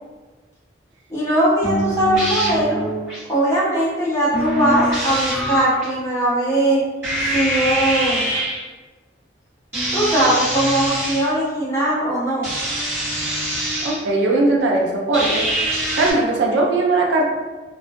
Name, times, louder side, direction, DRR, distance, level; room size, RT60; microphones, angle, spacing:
voice 1, 1.1-2.8 3.3-6.8 7.3-8.3 9.9-12.5, right 1 dB, 15° left, -8 dB, 0.8 m, -20 dB
sound 1, 1.6-3.2 4.3-5.9 7.0-8.6 9.7-11.3 12.4-14.0 15.1-16.1, right 1 dB, 15° right, 1.1 m, -24 dB
voice 2, 13.8-15.4 15.9-17.2, right 2 dB, 80° right, 0 dB, 0.5 m, -19 dB
2.3 x 2.1 x 2.5 m, 1.3 s
head